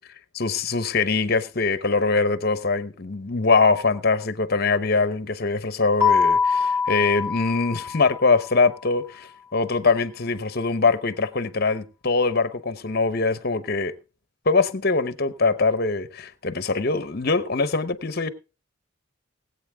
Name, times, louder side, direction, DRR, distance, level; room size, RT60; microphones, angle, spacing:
voice 1, 0.3-13.9 14.5-18.3, left 4 dB, 50° left, 0.8 m, -23 dB
Keyboard (musical), 6.0-8.6, left 6 dB, 15° right, 3.3 m, -23 dB
20.0 x 8.2 x 3.5 m
head